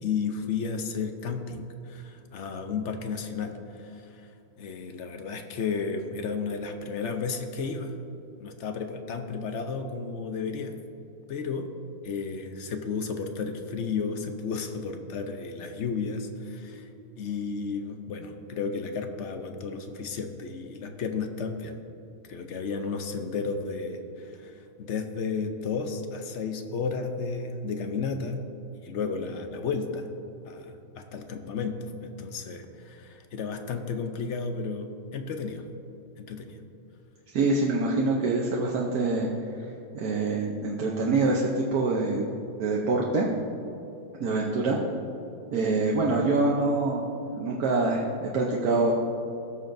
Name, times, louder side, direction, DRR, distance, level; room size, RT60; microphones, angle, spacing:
voice 1, 0.0-4.2 4.6-7.9 8.4-10.8 11.3-11.7 12.0-16.9 17.2-21.8 22.3-28.4 28.8-30.1 30.4-35.6 36.2-36.6, left 5 dB, 60° left, 6 dB, 0.9 m, -33 dB
voice 2, 37.3-39.3 39.9-42.3 42.6-43.3 44.2-44.8 45.5-47.0 47.3-48.9, right 3 dB, 70° right, -2 dB, 1.3 m, -25 dB
17.5 x 6.9 x 2.6 m, 2.9 s
omnidirectional pair, 1.7 m